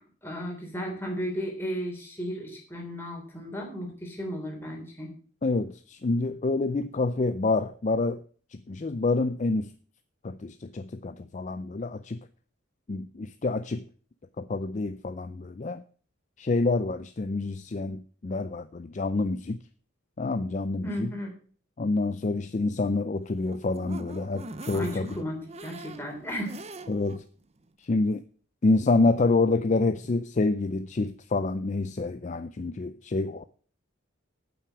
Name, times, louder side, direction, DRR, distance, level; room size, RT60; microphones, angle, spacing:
voice 1, 0.0-5.1 20.8-21.3 24.7-26.6, equal, 10° left, 3.3 m, -35 dB
voice 2, 5.4-8.2 8.7-9.7 10.2-12.3 12.9-13.8 14.4-15.8 16.4-19.6 20.2-21.1 21.8-25.1 26.9-27.2 27.8-28.2 28.6-33.4, left 3 dB, 35° left, 0.4 m, -27 dB
sound 1, 23.2-27.2 27.6-27.7 28.0-28.1, right 2 dB, 30° right, 0.7 m, -43 dB
9.1 x 8.1 x 6.1 m
head